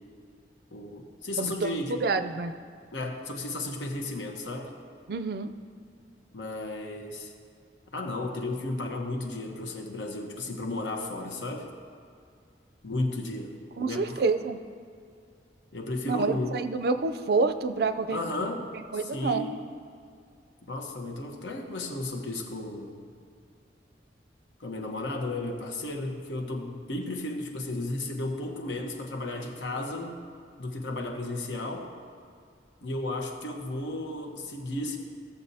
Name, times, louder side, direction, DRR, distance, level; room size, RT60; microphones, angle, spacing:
voice 1, 0.7-2.1 2.9-4.7 6.3-7.3 7.9-11.7 12.8-14.2 15.7-16.5 18.1-18.6 19.0-19.5 20.6-23.0 24.6-30.2 30.6-31.9 32.8-35.0, left 2 dB, 90° left, 2 dB, 1.1 m, -34 dB
voice 2, 1.4-1.7 2.0-2.6 5.1-5.5 13.8-14.6 16.1-18.2 18.6-19.5, right 4 dB, 60° right, 10 dB, 0.4 m, -28 dB
16.0 x 7.0 x 2.8 m, 2.3 s
head